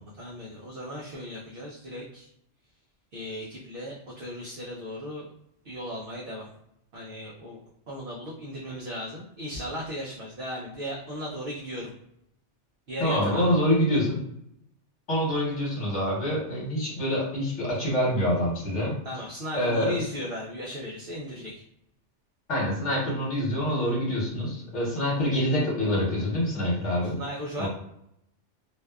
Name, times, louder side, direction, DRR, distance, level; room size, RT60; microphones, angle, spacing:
voice 1, 0.2-2.3 3.1-5.3 5.6-6.5 6.9-7.6 7.9-11.9 12.9-13.5 19.0-21.6 27.1-27.7, equal, 60° right, -4 dB, 0.6 m, -36 dB
voice 2, 13.0-14.2 15.1-19.0 19.5-20.0 22.5-27.2 27.6-27.7, equal, 75° left, -6 dB, 1.2 m, -26 dB
2.6 x 2.2 x 2.2 m, 0.76 s
omnidirectional pair, 1.2 m